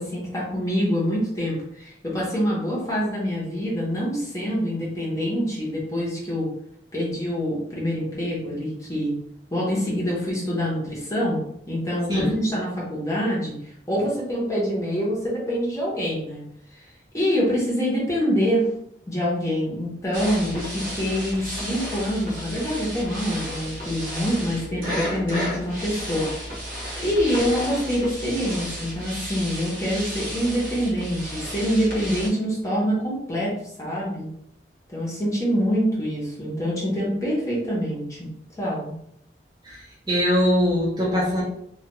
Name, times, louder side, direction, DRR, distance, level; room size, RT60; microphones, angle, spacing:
voice 1, 0.0-6.5 6.9-9.1 9.5-11.4 11.7-13.6 13.9-16.4 16.7-16.8 17.1-18.7 19.1-26.3 27.0-33.5 33.8-34.3 34.9-38.2 38.6-38.9, equal, 15° left, -6 dB, 0.8 m, -25 dB
sound 1, 20.1-32.3, equal, 50° right, 0.8 m, -33 dB
voice 2, 39.6-41.4, equal, 20° right, -6 dB, 0.6 m, -22 dB
2.3 x 2.2 x 2.9 m, 0.73 s
head